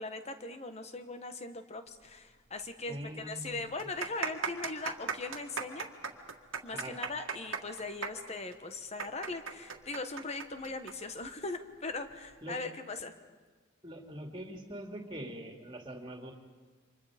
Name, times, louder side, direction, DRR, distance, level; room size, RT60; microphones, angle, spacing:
voice 1, 0.0-5.9 6.6-13.1, left 3 dB, 35° left, 8 dB, 1.3 m, -40 dB
sound 1, 2.6-2.7 3.0-3.1 3.7-10.9 11.2-11.3 12.1-12.3, right 6 dB, 80° right, 1.8 m, -37 dB
voice 2, 2.9-3.6 6.7-7.0 12.4-12.6 13.8-16.3, right 1 dB, 25° right, 2 dB, 2.7 m, -43 dB
29.0 x 25.5 x 5.1 m, 1.4 s
head